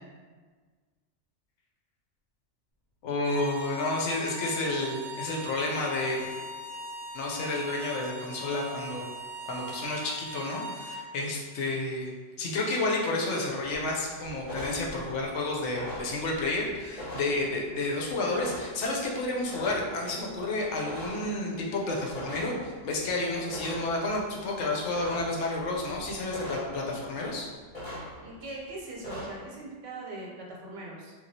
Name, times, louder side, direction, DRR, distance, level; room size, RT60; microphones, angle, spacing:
voice 1, 3.0-6.3 7.1-9.1 9.5-27.5, left 2 dB, 75° left, -2 dB, 0.9 m, -31 dB
sound 1, 3.2-11.1, equal, 45° right, 0.6 m, -40 dB
sound 2, 13.6-27.4 27.7-28.7 28.9-29.5, equal, 30° left, 1.0 m, -42 dB
voice 2, 28.2-31.1, right 2 dB, 80° right, -2 dB, 1.0 m, -41 dB
3.0 x 2.3 x 2.7 m, 1.5 s
omnidirectional pair, 1.2 m